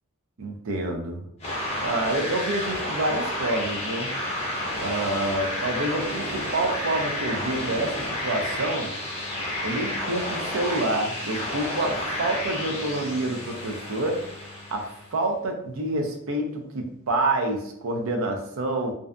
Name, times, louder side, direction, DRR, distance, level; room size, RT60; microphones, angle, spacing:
voice 1, 0.4-1.3 1.8-4.1 4.8-8.9 9.6-14.2 14.7-18.9, right 2 dB, 70° right, 3 dB, 0.5 m, -28 dB
sound 1, 1.4-15.1, left 1 dB, 30° left, 0.7 m, -31 dB
2.5 x 2.1 x 2.4 m, 0.76 s
head